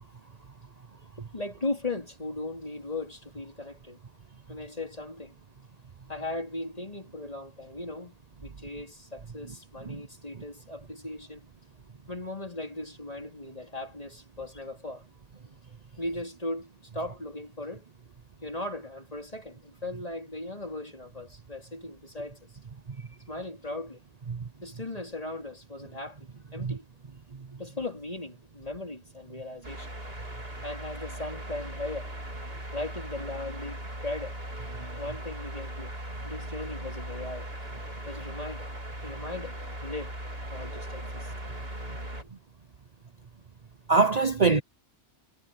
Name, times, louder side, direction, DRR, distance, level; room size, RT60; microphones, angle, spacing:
voice 1, 1.3-4.0 4.5-5.3 6.1-8.2 8.4-11.5 12.1-15.1 16.0-17.9 18.4-22.4 23.3-24.0 24.6-26.2 26.5-26.9 27.6-29.9 30.6-32.1 32.7-34.4 35.0-35.9 36.2-37.5 38.1-38.7 39.0-39.5 39.8-40.2 40.5-41.3, left 2 dB, 30° left, 3.4 m, -37 dB
sound 1, 29.6-42.2, right 1 dB, 55° right, 4.7 m, -38 dB
voice 2, 43.9-44.6, right 4 dB, 40° right, 0.9 m, -23 dB
omnidirectional pair, 1.2 m